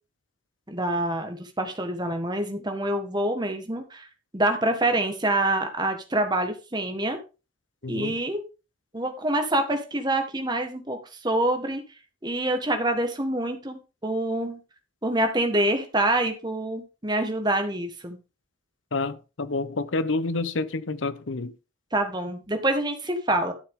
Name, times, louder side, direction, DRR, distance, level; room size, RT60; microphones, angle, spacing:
voice 1, 0.7-4.1 4.3-7.2 7.9-8.4 8.9-11.8 12.2-14.6 15.0-18.2 21.9-23.5, right 1 dB, 20° right, 1.6 m, -26 dB
voice 2, 7.8-8.2 18.9-21.5, left 3 dB, 75° left, 0.8 m, -28 dB
12.5 x 7.3 x 3.7 m
head